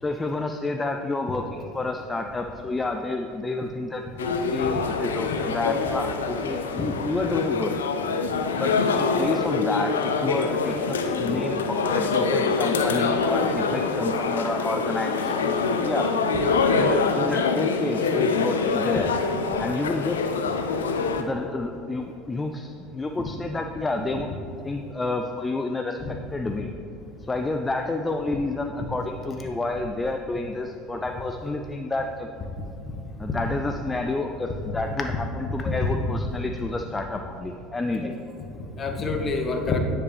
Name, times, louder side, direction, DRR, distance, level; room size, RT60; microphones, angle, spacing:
voice 1, 0.0-7.8 8.5-16.1 16.7-19.1 19.6-20.2 21.2-24.3 24.6-26.0 26.3-26.7 27.2-32.3 33.2-38.1, left 2 dB, 20° left, 4 dB, 0.4 m, -29 dB
sound 1, 4.2-21.2, left 4 dB, 85° left, 0.4 m, -25 dB
voice 2, 32.9-33.3 35.1-35.7 38.0-38.1 38.5-39.8, left 3 dB, 35° left, 3 dB, 1.0 m, -29 dB
9.8 x 5.0 x 3.4 m, 2.8 s
hypercardioid pair, 75°, 0 cm